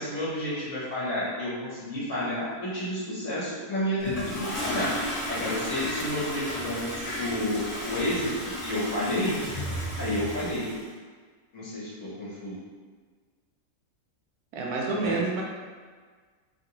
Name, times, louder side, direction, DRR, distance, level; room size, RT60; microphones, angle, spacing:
voice 1, 0.0-4.9 5.3-9.4 10.0-10.7 11.5-12.5 15.0-15.2, left 1 dB, 55° left, -8 dB, 1.3 m, -30 dB
Toilet flush, 4.0-10.8, equal, 75° left, 0.3 m, -34 dB
voice 2, 14.5-15.4, right 3 dB, 75° right, -1 dB, 1.1 m, -28 dB
2.9 x 2.9 x 2.8 m, 1.5 s
omnidirectional pair, 1.7 m